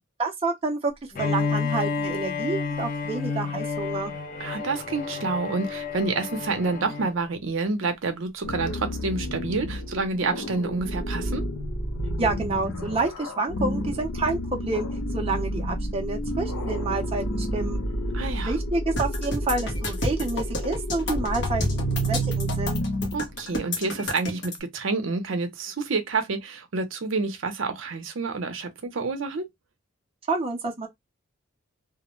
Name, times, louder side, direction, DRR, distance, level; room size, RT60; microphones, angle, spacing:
voice 1, 0.2-0.9 1.2-4.1 12.2-14.9 15.1-17.8 18.4-22.8 30.3-30.9, right 3 dB, 30° right, 0.6 m, -28 dB
Bowed string instrument, 1.1-7.2, left 4 dB, 40° left, 0.5 m, -30 dB
voice 2, 4.4-11.4 18.1-18.5 23.1-29.5, right 3 dB, 70° right, 0.6 m, -28 dB
sound 1, 8.4-24.0, equal, 85° left, 0.6 m, -30 dB
sound 2, 19.0-24.6, left 1 dB, 60° left, 0.9 m, -30 dB
2.3 x 2.1 x 2.9 m
head